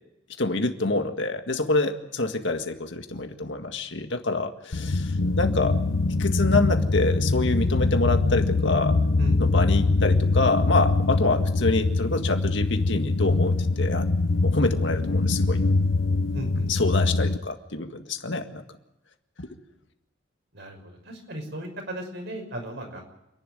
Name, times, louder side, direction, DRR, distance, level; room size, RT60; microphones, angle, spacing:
voice 1, 0.4-5.8 6.2-9.0 9.4-14.1 14.4-15.6 16.7-18.6 19.4-19.5, left 2 dB, 65° left, 6 dB, 1.9 m, -26 dB
sound 1, 4.7-17.4, left 3 dB, 85° left, 0.9 m, -23 dB
voice 2, 16.3-16.7 20.5-23.1, equal, 60° right, 3 dB, 6.1 m, -36 dB
28.0 x 11.5 x 9.2 m, 0.92 s
head